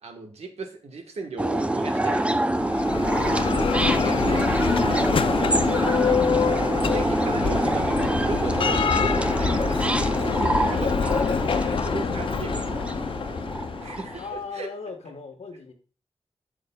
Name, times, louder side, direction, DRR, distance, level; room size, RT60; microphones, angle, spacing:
voice 1, 0.0-2.3 3.9-6.2 6.9-13.4 13.8-14.7, right 3 dB, 85° right, 4 dB, 1.2 m, -37 dB
sound 1, 1.4-14.2, right 1 dB, 10° right, 0.4 m, -26 dB
Bell, 2.5-14.3, left 6 dB, 55° left, 0.4 m, -26 dB
voice 2, 3.9-4.4 14.2-15.7, left 4 dB, 90° left, 6 dB, 1.2 m, -38 dB
11.0 x 6.5 x 2.2 m, 0.40 s
wide cardioid pair, 135°, 11 cm